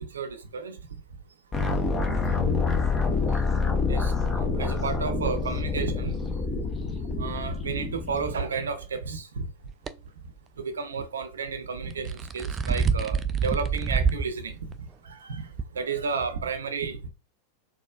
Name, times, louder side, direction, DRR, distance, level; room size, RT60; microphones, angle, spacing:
voice 1, 0.1-0.8 1.7-2.3 2.7-3.1 3.9-6.5 7.2-9.5 10.6-14.7 15.0-15.5 15.7-17.1, right 5 dB, 70° right, 0.6 m, -32 dB
sound 1, 1.5-8.4, left 4 dB, 20° left, 0.8 m, -27 dB
sound 2, 9.7-9.9 11.9-14.3 14.7-14.8 15.6-15.7, right 5 dB, 20° right, 0.3 m, -26 dB
4.1 x 2.5 x 2.4 m
figure-of-eight pair, 90°, 0 cm